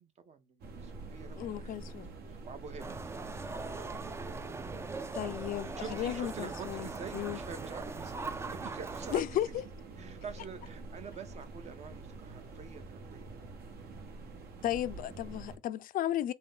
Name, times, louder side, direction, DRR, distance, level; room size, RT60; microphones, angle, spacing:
voice 1, 0.0-4.0 5.6-9.4 10.0-13.5, right 6 dB, 40° right, 0.7 m, -47 dB
sound 1, 0.6-15.6, right 3 dB, 70° right, 0.9 m, -47 dB
voice 2, 1.4-2.1 5.1-6.9 7.1-7.4 9.1-9.6 14.6-16.3, left 12 dB, 55° left, 0.4 m, -34 dB
sound 2, 2.8-9.2, right 4 dB, 15° right, 0.3 m, -41 dB
3.7 x 2.7 x 3.5 m
cardioid pair, 110°, 17 cm